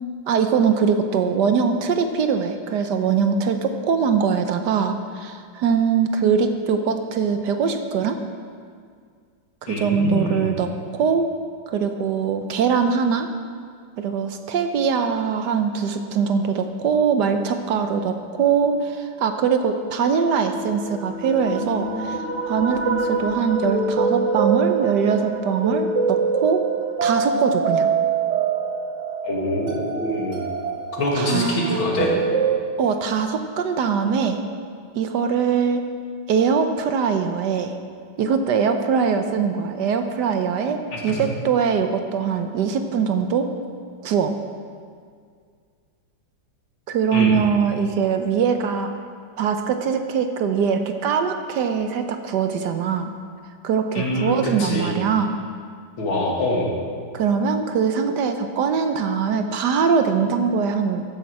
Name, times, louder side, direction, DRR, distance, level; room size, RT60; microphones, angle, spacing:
voice 1, 0.3-8.2 9.6-11.2 11.7-13.3 14.0-26.6 27.0-27.9 31.1-31.8 32.8-34.4 35.0-35.9 36.3-37.7 38.2-43.5 44.0-44.4 46.9-48.9 49.4-53.1 53.6-55.3 57.1-61.0, right 6 dB, 70° right, 7 dB, 1.2 m, -22 dB
voice 2, 9.7-10.5 29.2-30.4 31.0-32.1 40.9-41.2 47.1-47.3 53.9-54.9 56.0-56.7, left 1 dB, 90° left, -2 dB, 2.8 m, -25 dB
sound 1, 20.3-32.6, right 5 dB, 50° right, 1.0 m, -25 dB
13.5 x 10.0 x 4.7 m, 2.1 s
omnidirectional pair, 2.1 m